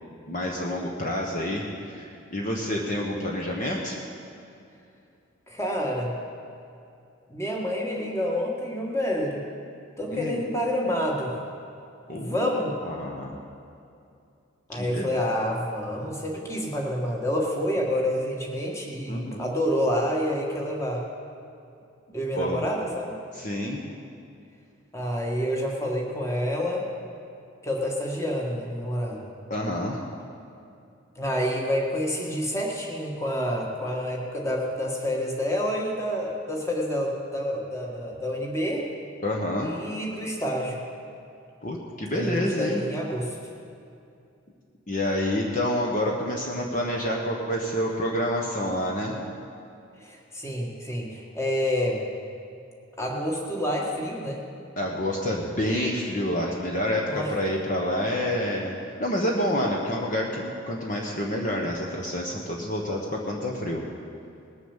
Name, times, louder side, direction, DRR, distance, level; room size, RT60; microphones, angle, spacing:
voice 1, 0.3-4.0 10.1-10.4 12.1-12.5 12.8-13.4 14.8-15.2 19.1-19.5 22.3-22.7 23.3-23.8 29.5-30.0 39.2-39.7 41.6-42.8 44.9-49.1 54.8-63.8, left 1 dB, 40° left, -1 dB, 1.1 m, -28 dB
voice 2, 5.5-6.1 7.3-9.4 10.0-11.3 12.1-12.7 14.7-21.0 22.1-23.2 24.9-26.9 27.6-29.2 31.1-38.9 39.6-40.8 42.1-43.4 50.0-52.0 53.0-54.4 57.1-57.3, equal, 15° left, -1 dB, 1.6 m, -28 dB
19.5 x 7.0 x 7.3 m, 2.5 s
head